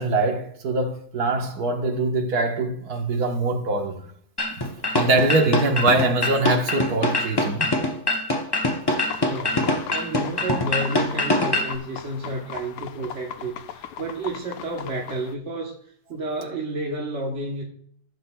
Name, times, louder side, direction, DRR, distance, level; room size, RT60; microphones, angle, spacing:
voice 1, 0.0-4.0 5.0-7.7, right 2 dB, 70° right, 1.8 m, -23 dB
sound 1, 4.4-11.7, left 2 dB, 25° left, 0.6 m, -24 dB
sound 2, 9.1-15.3, left 9 dB, 90° left, 1.2 m, -38 dB
voice 2, 9.2-17.6, right 2 dB, 50° right, 1.4 m, -31 dB
15.5 x 7.9 x 2.3 m
omnidirectional pair, 1.7 m